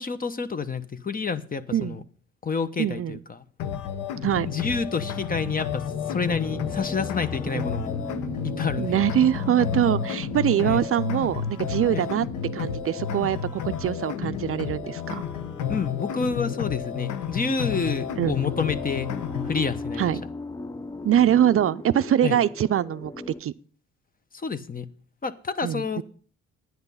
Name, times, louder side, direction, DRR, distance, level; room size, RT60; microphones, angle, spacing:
voice 1, 0.0-2.0 2.4-3.5 4.4-7.9 8.4-9.0 10.6-10.9 11.9-12.1 15.7-19.1 19.4-20.1 22.2-22.4 24.3-24.9 25.2-26.0, left 5 dB, 30° left, 0.9 m, -29 dB
voice 2, 2.8-3.2 4.2-4.5 7.5-7.6 8.8-12.3 12.5-15.2 18.2-18.3 20.0-20.2 21.0-23.1 23.4-23.5 25.6-26.0, right 11 dB, 50° right, 0.5 m, -23 dB
sound 1, 3.6-19.6, left 8 dB, 90° left, 1.0 m, -31 dB
sound 2, 4.8-23.4, left 3 dB, 10° left, 0.4 m, -38 dB
10.5 x 9.6 x 5.5 m
cardioid pair, 90°, 30 cm